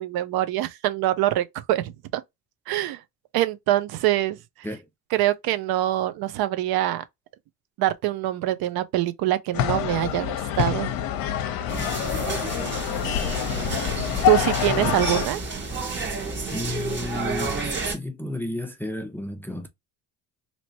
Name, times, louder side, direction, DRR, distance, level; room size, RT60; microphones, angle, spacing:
voice 1, 0.0-2.2 2.7-3.0 3.3-4.4 5.1-7.0 7.8-10.9 14.3-15.4, right 14 dB, 65° right, 0.7 m, -24 dB
sound 1, 9.5-15.3, left 11 dB, 60° left, 0.8 m, -26 dB
sound 2, 11.7-17.9, right 4 dB, 30° right, 1.4 m, -31 dB
voice 2, 14.7-15.0 16.5-17.6 17.8-19.7, left 1 dB, 5° left, 0.5 m, -32 dB
2.9 x 2.9 x 2.7 m
supercardioid pair, 105°, 40 cm